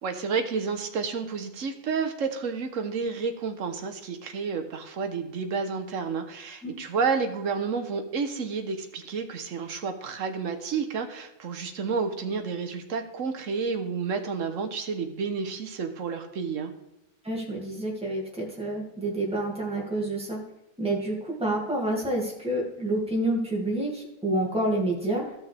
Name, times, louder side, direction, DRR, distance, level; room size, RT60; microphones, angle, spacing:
voice 1, 0.0-16.7, right 5 dB, 50° right, 6 dB, 1.1 m, -30 dB
voice 2, 17.2-20.4 20.8-25.3, right 1 dB, 5° right, -3 dB, 2.1 m, -28 dB
14.0 x 6.1 x 3.4 m, 0.94 s
omnidirectional pair, 2.0 m